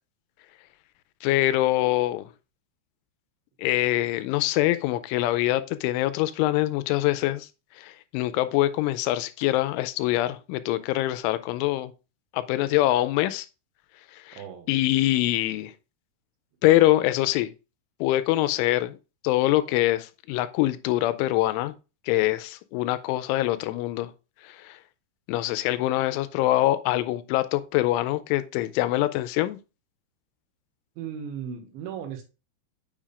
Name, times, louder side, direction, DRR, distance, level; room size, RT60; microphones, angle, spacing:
voice 1, 1.2-2.3 3.6-7.5 7.8-11.9 12.3-13.5 14.1-14.4 14.7-15.7 16.6-17.5 18.0-19.0 19.2-21.7 22.1-24.1 24.4-24.8 25.3-29.6, left 15 dB, 85° left, 3.0 m, -24 dB
voice 2, 14.3-14.7 31.0-32.2, right 8 dB, 75° right, 3.5 m, -36 dB
7.4 x 6.9 x 2.4 m
omnidirectional pair, 5.5 m